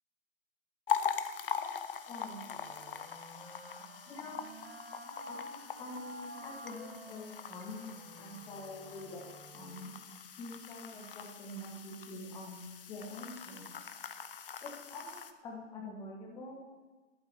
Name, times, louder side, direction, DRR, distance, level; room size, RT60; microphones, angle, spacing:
sound 1, 0.9-15.3, left 7 dB, 45° left, 0.7 m, -42 dB
voice 1, 2.1-2.5 4.1-4.4 5.3-5.4 5.8-9.2 9.5-9.9 10.4-13.7 14.6-16.7, left 2 dB, 10° left, -1 dB, 1.4 m, -46 dB
Wind instrument woodwind instrument, 2.5-10.0, right 1 dB, 50° right, 4.3 m, -51 dB
12.5 x 12.0 x 3.5 m, 1.3 s
figure-of-eight pair, 140°, 39 cm